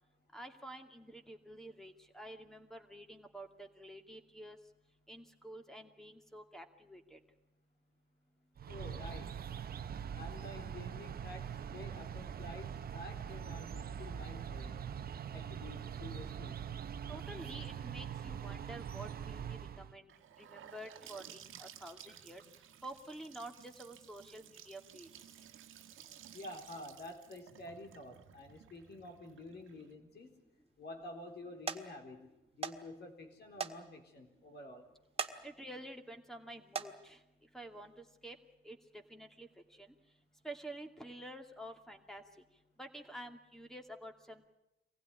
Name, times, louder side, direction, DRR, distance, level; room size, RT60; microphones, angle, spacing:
voice 1, 0.3-4.6 5.1-7.2 17.1-20.1 20.4-22.4 22.8-25.1 35.4-37.2 37.5-38.4 38.6-38.8 39.1-39.9 40.4-42.2 42.8-44.5, right 1 dB, ahead, 6 dB, 2.4 m, -49 dB
sound 1, 8.6-20.0, right 8 dB, 50° right, 1.0 m, -43 dB
voice 2, 8.7-9.4 10.1-14.8 15.3-16.6 26.3-30.4 30.8-34.9, left 2 dB, 55° left, 3 dB, 3.9 m, -50 dB
Gurgling / Sink (filling or washing) / Bathtub (filling or washing), 20.1-29.9, right 10 dB, 80° right, 1.5 m, -56 dB
sound 2, 30.2-30.7 31.2-31.4 31.7-31.8 32.6-32.8 33.1-33.2 33.6-33.8 34.2-34.3 35.0-35.3 35.8-36.1 36.6-36.9 37.8-38.0 38.5-38.6, right 5 dB, 30° right, 1.8 m, -39 dB
24.0 x 16.0 x 9.9 m, 0.92 s
cardioid pair, 90°, 20 cm